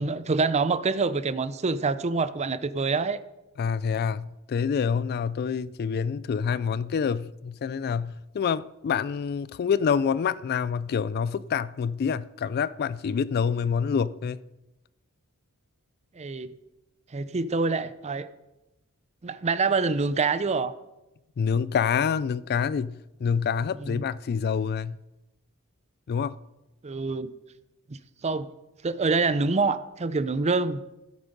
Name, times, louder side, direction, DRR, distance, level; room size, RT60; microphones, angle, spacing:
voice 1, 0.0-3.2 16.2-16.5 17.1-18.3 19.2-20.7 23.8-24.0 26.8-27.3 27.9-28.5 28.8-30.8, right 4 dB, 30° right, 0.5 m, -26 dB
voice 2, 3.6-14.4 21.4-25.0 26.1-26.4, left 6 dB, 45° left, 0.3 m, -27 dB
14.0 x 8.3 x 5.3 m
head